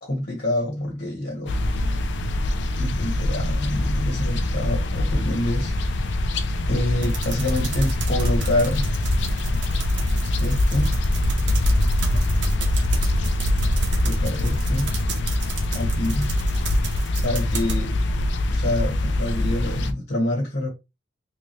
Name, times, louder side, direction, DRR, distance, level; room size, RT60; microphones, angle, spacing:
voice 1, 0.0-1.9 2.8-5.7 6.7-8.9 10.4-11.0 14.0-14.9 15.7-16.3 17.2-17.9 18.5-20.7, left 1 dB, 50° left, 1.3 m, -27 dB
sound 1, 1.5-19.9, left 1 dB, 65° left, 0.5 m, -23 dB
sound 2, 7.0-17.8, right 2 dB, 65° right, 1.0 m, -32 dB
3.3 x 2.8 x 3.1 m
head